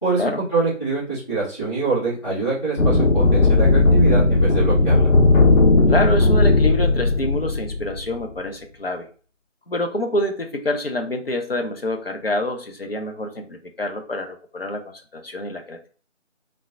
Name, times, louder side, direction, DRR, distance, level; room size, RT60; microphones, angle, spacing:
voice 1, 0.0-5.1, right 3 dB, 25° left, -11 dB, 1.2 m, -24 dB
sound 1, 2.8-8.2, left 2 dB, 90° left, 0.7 m, -16 dB
voice 2, 5.9-9.1 9.7-15.9, left 1 dB, 50° left, 4 dB, 0.4 m, -26 dB
3.3 x 2.0 x 2.6 m, 0.41 s
figure-of-eight pair, 170°, 38 cm